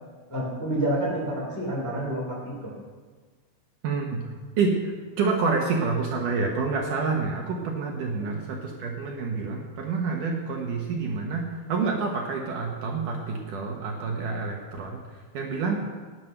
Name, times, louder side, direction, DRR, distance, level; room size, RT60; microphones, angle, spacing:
voice 1, 0.3-2.7, right 1 dB, 5° left, -5 dB, 2.8 m, -28 dB
voice 2, 3.8-4.2 4.6-4.9 5.2-15.0 15.3-15.8, right 4 dB, 65° right, 0 dB, 2.2 m, -28 dB
19.0 x 7.8 x 6.0 m, 1.4 s
omnidirectional pair, 5.3 m